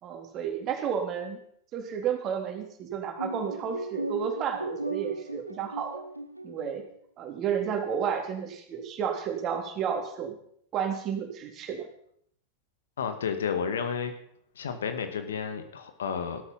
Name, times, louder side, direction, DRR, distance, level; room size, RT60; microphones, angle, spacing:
voice 1, 0.0-1.4 1.7-6.0 6.4-6.8 7.2-10.4 10.7-11.9, right 7 dB, 35° right, 4 dB, 3.5 m, -31 dB
sound 1, 3.2-6.9, right 1 dB, 85° right, 1.1 m, -36 dB
voice 2, 13.0-14.1 14.6-16.4, left 6 dB, 65° left, 8 dB, 2.1 m, -31 dB
16.0 x 13.5 x 5.6 m, 0.67 s
figure-of-eight pair, 90°, 0 cm